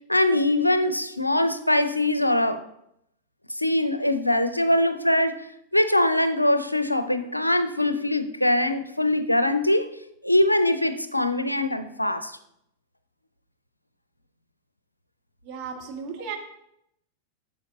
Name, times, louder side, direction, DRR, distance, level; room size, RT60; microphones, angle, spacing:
voice 1, 0.1-2.6 3.6-5.5 5.7-9.9 10.2-12.4, left 1 dB, 85° left, 12 dB, 0.5 m, -22 dB
voice 2, 15.4-16.4, right 6 dB, 40° right, 2 dB, 1.6 m, -35 dB
8.9 x 6.8 x 3.8 m, 0.77 s
figure-of-eight pair, 90°, 0 cm